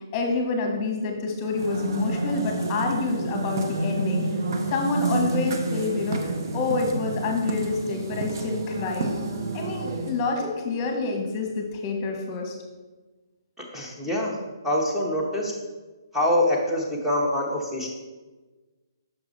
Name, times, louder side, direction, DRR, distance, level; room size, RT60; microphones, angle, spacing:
voice 1, 0.1-4.2 4.7-9.1 9.5-12.5, left 3 dB, 25° left, 2 dB, 1.1 m, -27 dB
sound 1, 1.4-10.3, right 3 dB, 60° right, 0.8 m, -29 dB
voice 2, 13.6-14.4 14.6-15.5 16.1-17.9, left 1 dB, 5° right, -3 dB, 1.0 m, -25 dB
6.1 x 4.7 x 4.0 m, 1.3 s
hypercardioid pair, 150°, 2 cm